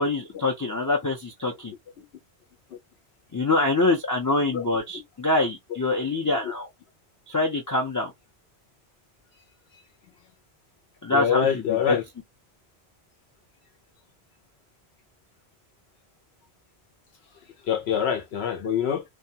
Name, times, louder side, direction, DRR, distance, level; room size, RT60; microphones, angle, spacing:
voice 1, 0.0-1.7 3.3-6.7 7.3-8.1 11.0-11.5 11.9-12.0, left 2 dB, 25° left, 0.4 m, -24 dB
voice 2, 11.1-12.0 17.7-19.0, left 8 dB, 75° left, 0.9 m, -25 dB
2.3 x 2.2 x 2.7 m
omnidirectional pair, 1.1 m